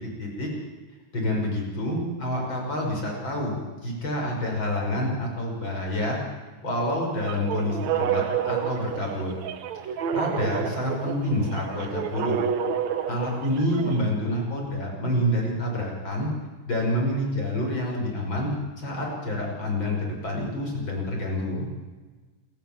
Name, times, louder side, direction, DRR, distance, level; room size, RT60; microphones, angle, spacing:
voice 1, 1.1-3.6 3.8-6.2 6.6-9.3 9.9-12.4 13.1-16.3 16.7-21.7, left 1 dB, 40° left, -1 dB, 6.5 m, -28 dB
sound 1, 7.2-14.0, right 8 dB, 70° right, 2.4 m, -29 dB
29.5 x 13.5 x 7.4 m, 1.3 s
omnidirectional pair, 3.4 m